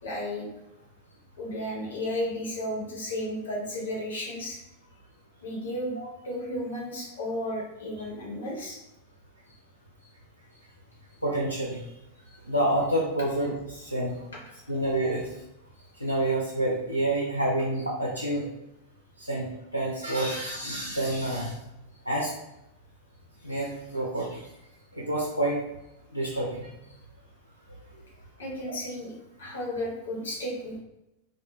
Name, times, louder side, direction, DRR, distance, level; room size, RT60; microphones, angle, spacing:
voice 1, 0.0-0.5 1.4-4.6 5.4-6.0 6.2-8.8 28.4-29.1 29.4-30.8, left 1 dB, 65° left, -3 dB, 0.8 m, -33 dB
voice 2, 11.2-11.8 12.5-14.2 14.7-15.3 16.0-18.5 19.2-19.5 19.7-21.5 22.1-22.3 23.4-24.4 25.0-25.6 26.1-26.7, right 1 dB, 90° right, -3 dB, 0.3 m, -28 dB
2.1 x 2.0 x 3.0 m, 0.89 s
figure-of-eight pair, 90°, 0 cm